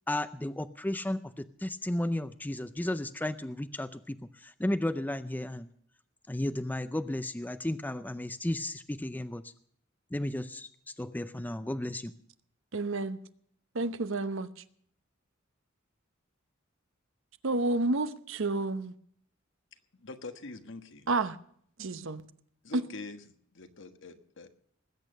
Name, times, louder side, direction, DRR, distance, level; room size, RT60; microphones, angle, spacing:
voice 1, 0.1-5.7 6.3-9.5 10.1-12.1, left 1 dB, 10° left, 0.5 m, -34 dB
voice 2, 12.7-13.2 13.7-14.5 17.4-18.9 21.1-21.4 21.8-22.2 22.7-22.8, right 2 dB, 70° right, 0.9 m, -30 dB
voice 3, 19.9-21.1 22.6-23.2 23.5-24.5, left 3 dB, 65° left, 1.4 m, -44 dB
19.5 x 8.6 x 6.6 m
head